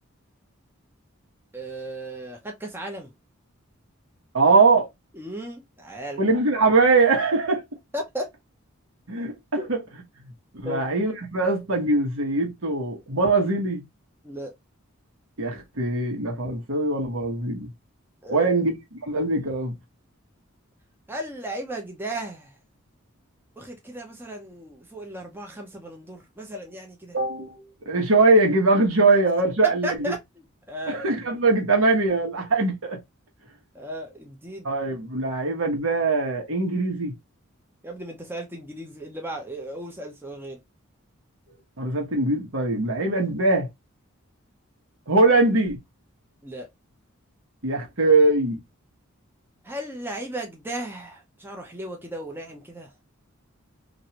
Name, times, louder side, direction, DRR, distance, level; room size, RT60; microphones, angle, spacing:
voice 1, 1.5-3.1 5.1-6.2 7.9-8.3 10.6-10.9 14.2-14.5 18.2-18.5 21.1-22.6 23.6-27.2 29.8-31.0 33.7-34.7 37.8-40.6 46.4-46.7 49.6-52.9, right 1 dB, 10° right, 0.6 m, -35 dB
voice 2, 4.3-4.9 6.2-7.6 9.1-9.3 9.7-9.8 10.5-13.8 15.4-17.7 18.3-19.7 27.1-30.1 30.9-33.0 34.6-37.1 41.8-43.7 45.1-45.8 47.6-48.6, right 3 dB, 75° right, 1.1 m, -22 dB
3.1 x 2.5 x 2.8 m
head